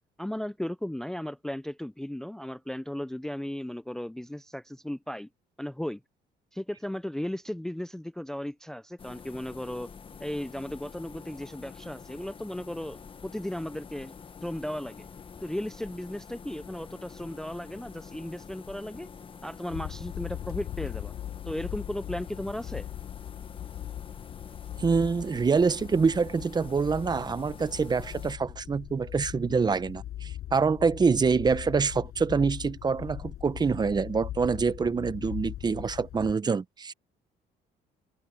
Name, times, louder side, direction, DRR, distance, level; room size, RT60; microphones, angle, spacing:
voice 1, 0.2-5.3 5.6-6.0 6.5-9.9 10.2-14.1 14.4-15.1 15.4-19.1 19.4-21.1 21.5-22.9, left 1 dB, 5° left, 0.5 m, -36 dB
sound 1, 9.0-28.4, left 6 dB, 30° left, 1.4 m, -47 dB
sound 2, 19.7-36.3, left 12 dB, 65° left, 6.7 m, -40 dB
voice 2, 24.8-36.9, right 5 dB, 25° right, 0.8 m, -26 dB
open air
cardioid pair, 110°, 17 cm